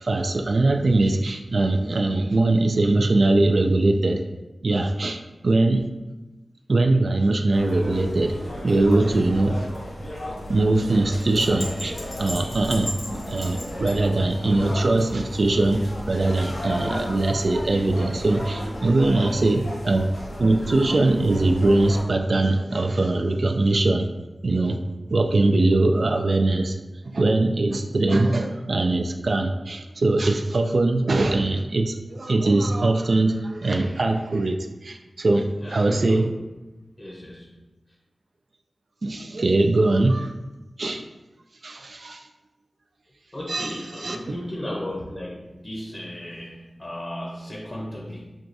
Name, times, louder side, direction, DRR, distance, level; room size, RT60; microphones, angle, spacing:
voice 1, 0.0-4.2 4.6-5.9 6.7-8.4 8.6-9.7 10.5-20.1 20.4-24.1 24.4-24.8 25.1-26.8 27.1-36.3 39.0-40.3 40.8-41.0 41.6-42.3 43.5-44.4, right 2 dB, 65° right, 4 dB, 0.3 m, -21 dB
sound 1, 7.5-22.0, equal, 85° left, 1.2 m, -34 dB
voice 2, 19.0-19.7 35.6-36.3 37.0-37.5 43.3-48.4, left 1 dB, 40° left, -1 dB, 0.7 m, -35 dB
6.0 x 2.3 x 2.6 m, 1.1 s
wide cardioid pair, 60°, 0 cm